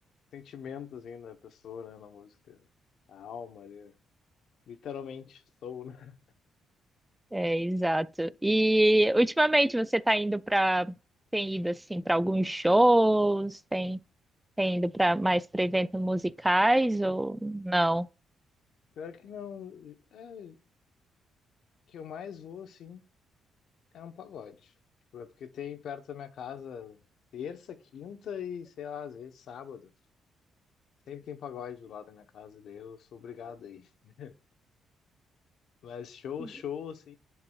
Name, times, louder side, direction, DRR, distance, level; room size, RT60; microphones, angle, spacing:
voice 1, 0.3-2.6 3.1-4.0 4.7-6.2 19.0-20.6 21.9-23.1 23.9-24.7 25.1-27.0 27.3-29.9 31.1-34.4 35.8-37.1, left 8 dB, 70° left, 0.9 m, -42 dB
voice 2, 7.3-10.9 11.3-14.0 14.6-18.1, right 1 dB, 10° right, 0.3 m, -25 dB
10.5 x 4.7 x 2.3 m
cardioid pair, 90°, 0 cm